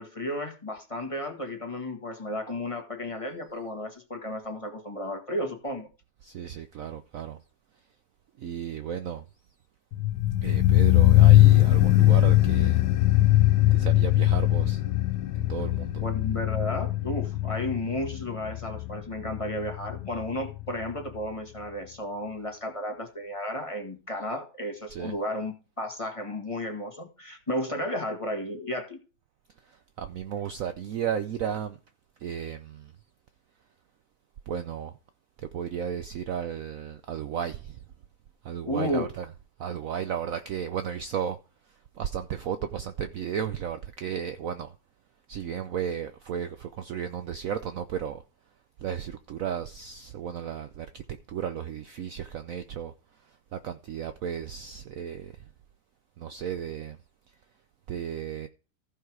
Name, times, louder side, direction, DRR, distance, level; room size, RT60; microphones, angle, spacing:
voice 1, 0.0-5.9 16.0-29.0 38.6-39.1, left 1 dB, 20° left, 1.7 m, -33 dB
voice 2, 6.2-7.4 8.4-9.2 10.4-12.8 13.7-14.8 15.3-16.0 24.9-25.2 29.6-31.8 32.2-32.9 34.5-34.9 35.4-37.8 38.4-39.3 39.6-41.4 41.9-44.7 45.3-48.2 48.8-52.9 53.5-55.3 56.2-57.0 57.9-58.5, right 8 dB, 65° right, 0.9 m, -34 dB
sound 1, 9.9-20.9 21.2-21.3, left 16 dB, 85° left, 1.5 m, -21 dB
14.5 x 5.6 x 4.7 m
omnidirectional pair, 1.9 m